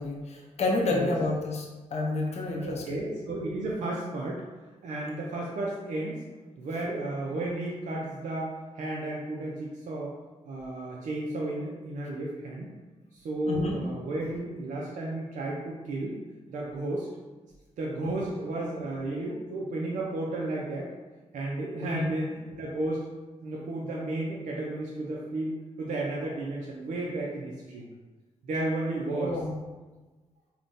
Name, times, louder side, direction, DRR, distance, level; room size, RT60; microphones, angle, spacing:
voice 1, 0.0-3.0 13.5-13.8 18.0-18.3 21.8-22.1 29.1-29.6, left 2 dB, 55° left, -1 dB, 0.5 m, -30 dB
voice 2, 2.6-4.4 4.8-6.2 6.6-10.1 10.5-12.7 13.2-16.2 16.5-17.1 17.8-20.9 21.3-23.1 23.4-27.8 28.5-29.4, right 2 dB, 75° right, -3 dB, 0.4 m, -33 dB
3.6 x 2.2 x 2.5 m, 1.2 s
cardioid pair, 55°, 13 cm